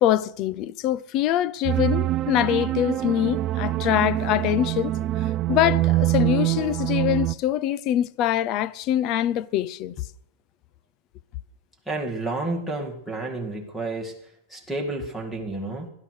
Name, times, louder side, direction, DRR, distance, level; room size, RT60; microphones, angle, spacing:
voice 1, 0.0-4.9 5.5-9.9, left 12 dB, 35° left, 0.5 m, -24 dB
sound 1, 1.6-7.3, right 15 dB, 30° right, 0.4 m, -24 dB
voice 2, 11.9-14.1 14.5-15.9, right 2 dB, 5° left, 2.0 m, -30 dB
16.5 x 11.5 x 6.4 m
supercardioid pair, 165°, 0 cm